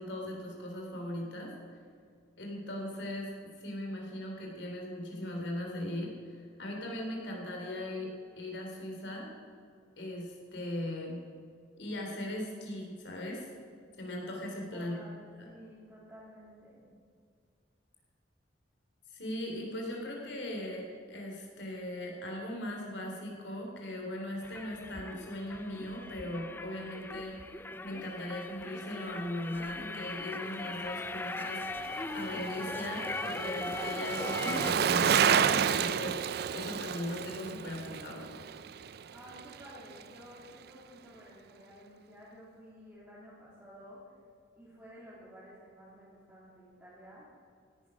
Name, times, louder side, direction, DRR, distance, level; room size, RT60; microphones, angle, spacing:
voice 1, 0.0-1.5 2.4-3.3 3.6-9.3 10.0-11.2 11.8-13.5 14.0-15.1 15.4-15.5 19.1-27.4 27.8-38.3, left 1 dB, 70° left, 0 dB, 3.7 m, -39 dB
voice 2, 14.7-16.8 39.1-44.1 44.6-47.3, equal, 5° right, -9 dB, 2.9 m, -52 dB
sound 1, 24.4-34.7, left 2 dB, 10° left, 0.4 m, -40 dB
Bicycle, 31.3-39.7 40.0-40.1, right 7 dB, 55° right, 0.4 m, -31 dB
16.5 x 10.0 x 6.2 m, 2.2 s
head